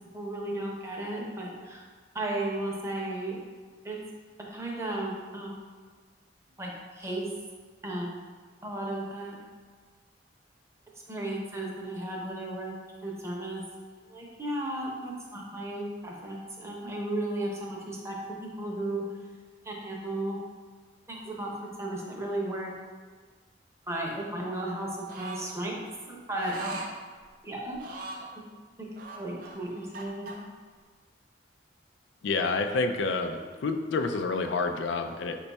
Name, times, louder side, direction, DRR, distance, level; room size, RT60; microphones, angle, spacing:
voice 1, 0.1-1.8 2.1-3.4 3.8-4.0 4.5-5.6 6.6-7.3 7.8-8.1 8.6-9.4 11.1-12.8 13.0-13.6 14.1-18.1 18.6-19.0 19.6-20.4 21.1-21.5 21.8-22.7 23.8-24.9 25.2-25.8 26.1-26.8 27.4-27.8 28.4-28.5 29.1-30.3, right 1 dB, 15° right, -2 dB, 0.6 m, -34 dB
sound 1, 25.1-25.5 26.3-26.9 27.7-28.3 29.0-30.4, right 2 dB, 55° right, 0.5 m, -40 dB
voice 2, 32.2-35.4, left 3 dB, 80° left, 7 dB, 0.3 m, -28 dB
5.2 x 2.3 x 4.0 m, 1.5 s
head